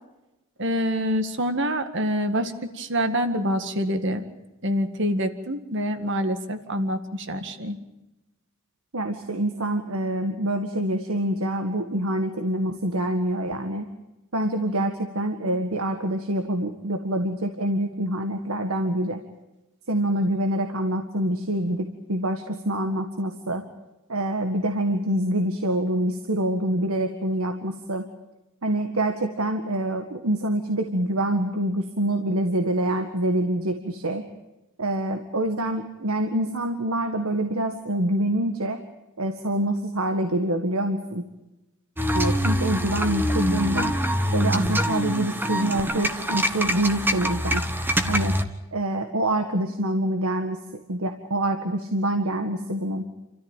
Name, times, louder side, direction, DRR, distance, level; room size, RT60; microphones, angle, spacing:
voice 1, 0.6-4.3 4.6-7.8, equal, 55° right, 9 dB, 1.9 m, -26 dB
voice 2, 8.9-13.9 14.3-19.2 19.9-23.6 24.1-28.1 28.6-34.2 34.8-38.8 39.2-41.3 42.1-43.9 44.3-47.6 48.1-48.3 48.7-50.6 50.9-53.1, right 1 dB, 80° right, 6 dB, 1.8 m, -26 dB
sound 1, 42.0-48.4, equal, 10° right, 1.2 m, -25 dB
29.5 x 14.0 x 9.1 m, 0.99 s
head